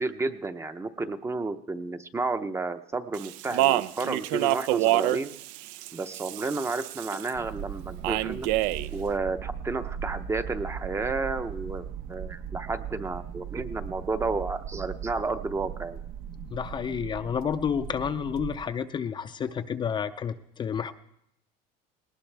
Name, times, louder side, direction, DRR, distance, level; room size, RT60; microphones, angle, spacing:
voice 1, 0.0-5.3 5.9-8.5 8.9-16.0, right 3 dB, 15° right, 10 dB, 0.7 m, -31 dB
Speech, 3.1-7.3 8.0-8.9, right 16 dB, 75° right, 0.5 m, -27 dB
sound 1, 7.3-18.6, right 8 dB, 55° right, 1.0 m, -38 dB
voice 2, 16.5-20.9, left 7 dB, 25° left, 9 dB, 0.5 m, -30 dB
19.0 x 19.0 x 3.4 m, 0.77 s
cardioid pair, 135°, 18 cm